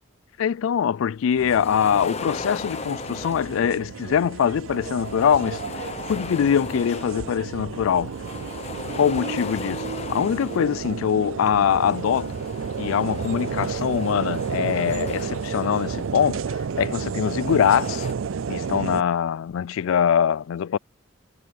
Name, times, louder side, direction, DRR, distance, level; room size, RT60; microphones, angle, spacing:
voice 1, 0.4-5.6 6.1-8.1 8.9-12.4 12.8-16.4 16.8-18.1 18.5-20.8, left 8 dB, 75° left, 0.3 m, -23 dB
sound 1, 1.3-4.0 4.6-7.5 7.8-11.0 11.7-16.5 17.1-18.1, left 3 dB, 30° left, 0.9 m, -38 dB
sound 2, 1.4-19.0, right 6 dB, 75° right, 0.4 m, -32 dB
head